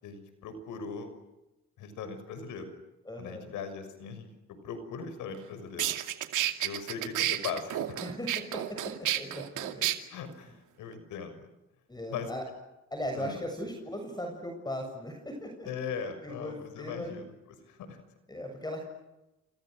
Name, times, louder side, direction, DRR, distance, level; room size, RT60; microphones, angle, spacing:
voice 1, 0.0-1.1 1.8-2.7 3.2-5.9 6.6-8.0 10.1-11.5 12.1-12.3 13.1-13.4 15.7-17.2 17.7-18.0, left 6 dB, 85° left, 9 dB, 6.4 m, -39 dB
voice 2, 3.0-3.5 8.0-9.9 10.4-10.5 11.9-12.4 12.9-16.0 16.2-17.2 18.3-18.8, equal, 15° left, 3 dB, 7.4 m, -38 dB
sound 1, 5.3-5.4 5.8-9.9, right 13 dB, 85° right, 2.5 m, -31 dB
29.0 x 28.5 x 6.5 m, 0.94 s
cardioid pair, 90°, 30 cm